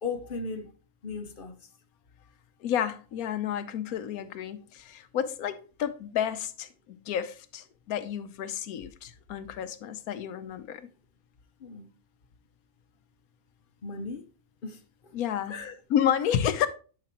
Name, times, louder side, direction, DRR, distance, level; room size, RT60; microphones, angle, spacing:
voice 1, 0.0-0.7 1.0-1.6 11.6-11.9 13.8-14.3 14.6-15.1 15.5-15.7, left 4 dB, 45° left, 0.8 m, -36 dB
voice 2, 2.6-10.9 15.1-15.6 15.9-16.7, left 9 dB, 85° left, 1.2 m, -30 dB
10.5 x 4.9 x 2.9 m
omnidirectional pair, 1.5 m